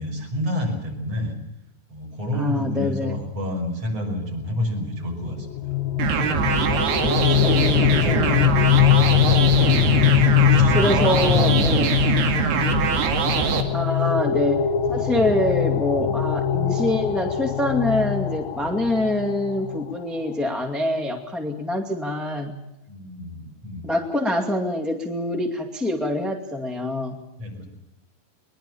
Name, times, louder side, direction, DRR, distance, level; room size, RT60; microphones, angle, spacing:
voice 1, 0.0-1.4 1.9-5.6 10.2-13.1 15.1-15.3 15.9-16.1 22.9-23.9 27.4-27.7, left 1 dB, 40° right, 1 dB, 6.7 m, -29 dB
voice 2, 2.3-3.2 7.0-8.6 10.7-12.0 13.7-14.6 14.9-22.5 23.8-27.2, left 1 dB, ahead, 3 dB, 1.1 m, -25 dB
sound 1, 5.2-19.9, left 11 dB, 75° left, 2.5 m, -22 dB
sound 2, 6.0-13.6, right 6 dB, 90° right, 4.1 m, -22 dB
22.0 x 21.5 x 7.1 m, 0.92 s
omnidirectional pair, 4.5 m